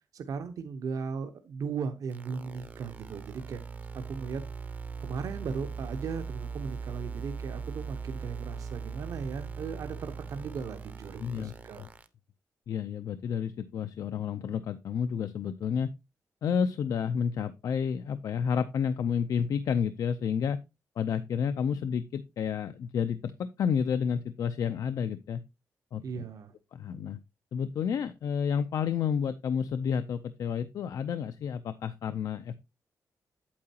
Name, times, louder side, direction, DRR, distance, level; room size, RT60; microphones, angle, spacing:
voice 1, 0.1-3.6 3.9-4.4 5.0-11.8 26.0-26.5, right 5 dB, 65° right, 1.0 m, -37 dB
sound 1, 2.1-12.1, right 5 dB, 25° right, 0.7 m, -40 dB
voice 2, 11.2-11.5 11.8-11.9 12.7-15.9 16.4-20.6 21.0-23.3 23.6-25.4 25.9-26.2 26.7-27.2 27.5-32.6, left 7 dB, 65° left, 0.5 m, -30 dB
8.6 x 8.5 x 2.9 m
wide cardioid pair, 165°, 6 cm